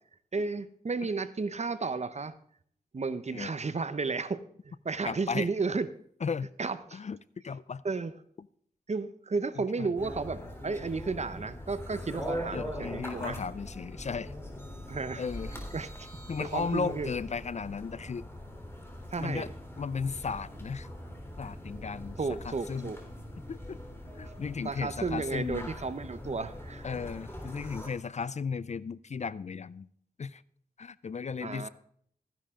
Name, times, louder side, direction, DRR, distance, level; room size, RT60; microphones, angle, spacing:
voice 1, 0.3-2.3 2.9-5.9 6.6-7.0 7.8-8.1 8.9-13.4 14.9-15.2 15.5-16.1 16.4-17.1 19.1-19.5 22.2-23.0 24.6-26.9 31.4-31.7, right 4 dB, 45° right, 13 dB, 0.8 m, -33 dB
voice 2, 5.0-5.5 6.2-6.5 6.9-7.2 7.4-7.8 9.6-9.9 12.5-14.3 15.2-15.6 16.3-18.3 19.2-19.5 19.8-20.9 21.4-22.2 22.4-22.9 23.5-23.8 24.1-25.7 26.8-29.9 30.2-30.4 30.8-31.7, left 5 dB, 45° left, 19 dB, 0.4 m, -35 dB
sound 1, 10.0-27.9, equal, 15° left, 3.4 m, -42 dB
15.0 x 10.5 x 3.7 m, 0.63 s
cardioid pair, 55°, 16 cm